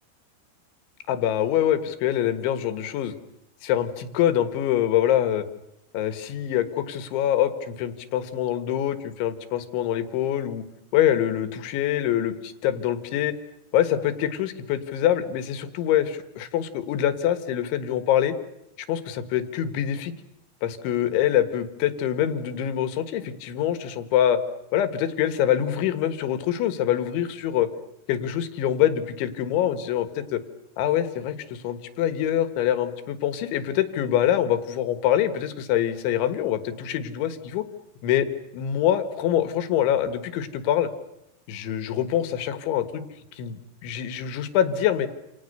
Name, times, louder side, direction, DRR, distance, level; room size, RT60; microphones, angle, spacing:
voice 1, 1.1-3.1 3.6-5.5 5.9-10.7 10.9-13.3 13.7-18.4 18.9-20.1 20.6-24.4 24.7-27.7 28.1-30.4 30.8-37.7 38.0-38.3 38.5-40.9 41.5-43.0 43.3-45.1, left 11 dB, 85° left, 10 dB, 3.9 m, -25 dB
29.0 x 28.0 x 6.7 m, 0.83 s
omnidirectional pair, 5.3 m